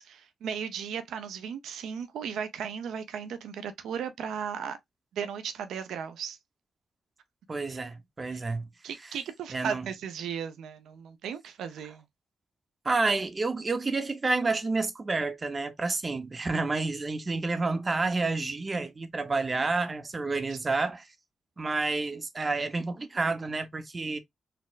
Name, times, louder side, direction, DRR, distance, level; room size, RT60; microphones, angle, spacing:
voice 1, 0.0-4.8 5.1-6.4 7.7-7.8 8.3-8.4 8.8-12.0 20.5-20.6, right 7 dB, 85° right, 0.5 m, -36 dB
voice 2, 7.5-8.7 9.5-9.9 12.8-21.1 21.6-24.2, right 3 dB, 35° right, 0.7 m, -29 dB
4.1 x 2.1 x 2.3 m
cardioid pair, 70°, 0 cm